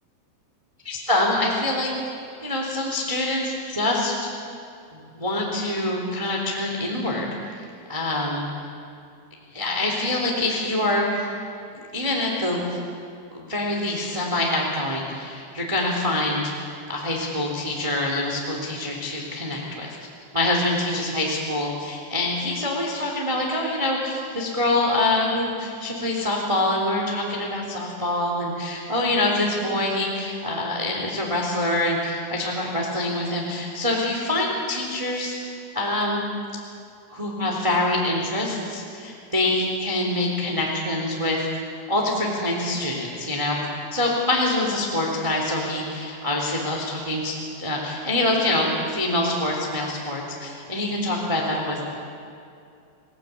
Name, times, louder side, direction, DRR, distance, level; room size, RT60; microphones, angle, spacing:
voice 1, 0.8-1.9 2.4-4.3 4.9-7.6 7.9-8.4 9.5-11.3 11.9-12.8 13.3-16.5 16.9-20.0 20.3-36.3 37.1-41.5 41.9-43.6 43.9-51.8, left 1 dB, 10° right, -1 dB, 2.6 m, -25 dB
29.0 x 17.5 x 8.4 m, 2.5 s
omnidirectional pair, 5.1 m